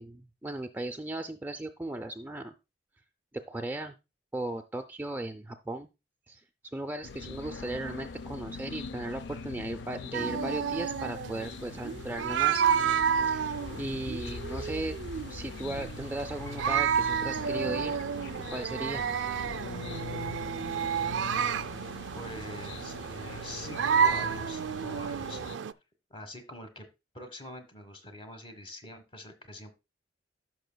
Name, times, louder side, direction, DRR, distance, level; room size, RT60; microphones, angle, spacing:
voice 1, 0.0-2.5 3.5-3.9 4.3-5.9 6.3-6.4 6.7-12.6 13.3-13.4 13.8-15.0 15.3-18.0 18.5-19.0, right 1 dB, 10° right, 5 dB, 0.4 m, -36 dB
sound 1, 7.0-25.6, left 4 dB, 70° left, 0.4 m, -42 dB
sound 2, 10.1-25.7, right 7 dB, 80° right, 0.4 m, -31 dB
voice 2, 22.2-25.4 26.1-26.9 27.1-29.7, left 1 dB, 30° left, 7 dB, 1.3 m, -44 dB
14.0 x 6.1 x 2.2 m, 0.26 s
head